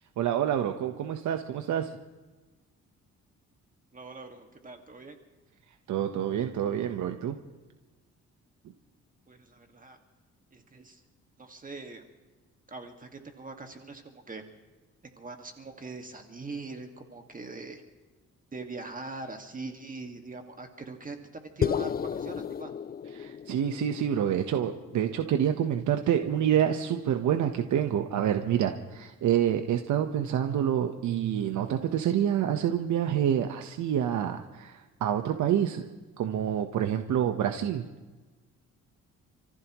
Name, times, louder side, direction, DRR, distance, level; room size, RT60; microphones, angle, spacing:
voice 1, 0.2-2.0 5.9-7.4 23.1-35.9 36.2-37.8, right 9 dB, 75° right, 6 dB, 1.2 m, -27 dB
voice 2, 3.9-5.2 9.3-10.0 10.5-11.0 11.4-12.0 12.7-14.4 15.0-17.8 18.5-22.7, right 3 dB, 25° right, 4 dB, 2.0 m, -42 dB
sound 1, 21.6-26.0, left 8 dB, 30° left, 0.5 m, -34 dB
29.0 x 15.0 x 3.1 m, 1.2 s
cardioid pair, 90°, 30 cm